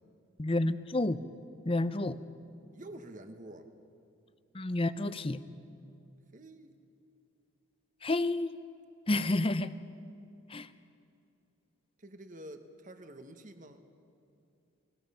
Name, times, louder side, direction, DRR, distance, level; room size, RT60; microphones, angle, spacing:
voice 1, 0.4-1.2 1.7-2.2 4.5-5.4 8.0-8.5 9.1-9.7 10.5-10.7, left 2 dB, 25° left, 13 dB, 0.6 m, -30 dB
voice 2, 2.7-3.7 6.3-6.7 12.0-13.8, right 1 dB, 35° right, 7 dB, 1.3 m, -48 dB
30.0 x 21.0 x 5.7 m, 2.6 s
head